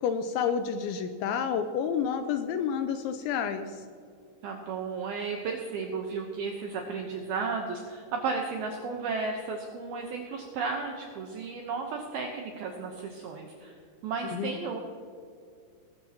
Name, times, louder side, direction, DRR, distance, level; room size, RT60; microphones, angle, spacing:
voice 1, 0.0-3.9 14.2-14.5, left 7 dB, 85° left, 8 dB, 2.7 m, -30 dB
voice 2, 4.4-13.7 14.0-14.8, right 4 dB, 80° right, 2 dB, 2.2 m, -34 dB
21.0 x 13.0 x 2.9 m, 2.4 s
omnidirectional pair, 5.7 m